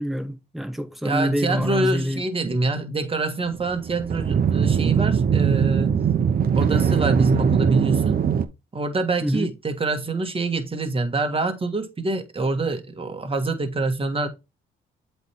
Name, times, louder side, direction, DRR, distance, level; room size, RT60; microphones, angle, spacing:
voice 1, 0.0-2.2 9.2-9.5, equal, ahead, 1.3 m, -26 dB
voice 2, 1.0-5.9 6.6-8.2 8.7-14.3, right 3 dB, 30° right, 1.7 m, -25 dB
sound 1, 3.5-8.4, right 7 dB, 45° right, 0.9 m, -21 dB
7.9 x 3.4 x 4.4 m
cardioid pair, 90°, 20 cm